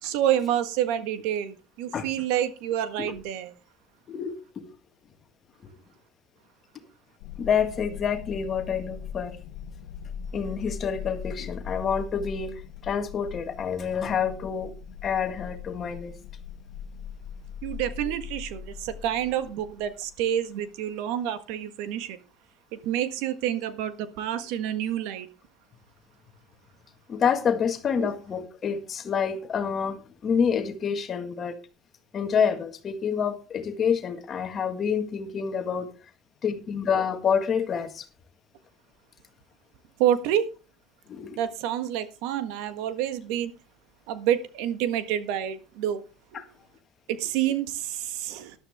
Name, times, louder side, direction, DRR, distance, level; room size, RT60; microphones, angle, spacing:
voice 1, 0.0-3.5 17.6-22.2 22.7-25.3 28.0-28.1 40.0-40.4 41.4-43.5 44.1-46.0 47.1-48.5, right 11 dB, 75° right, 11 dB, 1.6 m, -28 dB
voice 2, 4.1-4.7 5.6-5.7 7.4-9.4 10.3-14.7 15.0-16.1 27.1-31.6 32.1-35.9 36.4-38.1 41.1-41.4 46.3-46.4, left 7 dB, 30° left, 7 dB, 1.8 m, -28 dB
sound 1, 7.2-20.1, left 7 dB, 85° left, 0.8 m, -40 dB
13.0 x 11.5 x 3.6 m, 0.32 s
cardioid pair, 160°, 0 cm